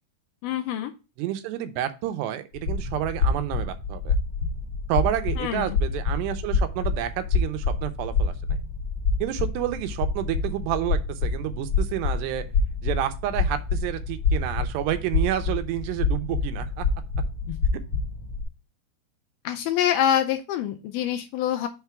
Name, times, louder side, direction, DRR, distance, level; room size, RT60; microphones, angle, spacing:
voice 1, 0.4-0.9 5.4-5.8 17.5-17.6 19.4-21.7, left 10 dB, 80° left, 5 dB, 2.3 m, -25 dB
voice 2, 1.2-4.1 4.9-8.3 9.2-12.4 12.8-16.9, right 13 dB, 85° right, 10 dB, 2.9 m, -29 dB
sound 1, 2.5-18.4, left 4 dB, 50° left, 1.8 m, -27 dB
6.7 x 3.5 x 5.7 m, 0.29 s
omnidirectional pair, 4.8 m